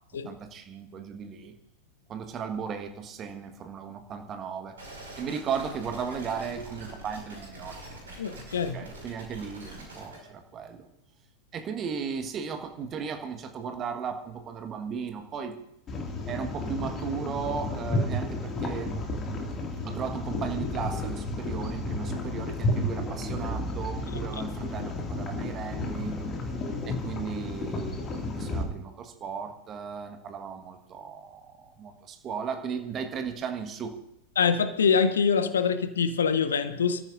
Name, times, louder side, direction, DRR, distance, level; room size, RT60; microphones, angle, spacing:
voice 1, 0.2-1.5 2.1-4.7 5.2-7.8 8.1-8.2 8.7-10.9 11.5-15.5 16.3-18.9 19.8-26.1 26.8-34.0, right 6 dB, 30° right, 6 dB, 1.5 m, -36 dB
sound 1, 4.8-10.2, right 1 dB, 70° right, 5.4 m, -44 dB
voice 2, 8.2-8.9 34.4-37.0, left 6 dB, 65° left, 12 dB, 0.9 m, -24 dB
sound 2, 15.9-28.6, left 2 dB, 25° left, 2.3 m, -32 dB
27.5 x 14.0 x 2.6 m, 0.81 s
figure-of-eight pair, 90°, 0 cm